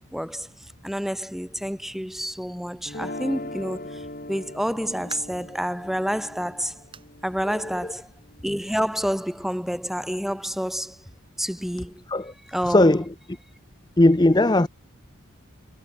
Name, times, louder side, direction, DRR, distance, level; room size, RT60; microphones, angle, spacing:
voice 1, 0.1-6.8 7.2-8.1 8.4-11.0 11.4-12.0 12.5-12.9, equal, ahead, 2.2 m, -29 dB
sound 1, 2.9-9.0, left 1 dB, 40° left, 4.3 m, -40 dB
sound 2, 5.1-5.5 6.0-6.1 6.9-7.2 7.5-7.6 8.1-8.2 9.3-9.4, right 5 dB, 25° right, 7.0 m, -45 dB
voice 2, 12.7-13.0 14.0-14.7, left 1 dB, 20° left, 0.7 m, -18 dB
head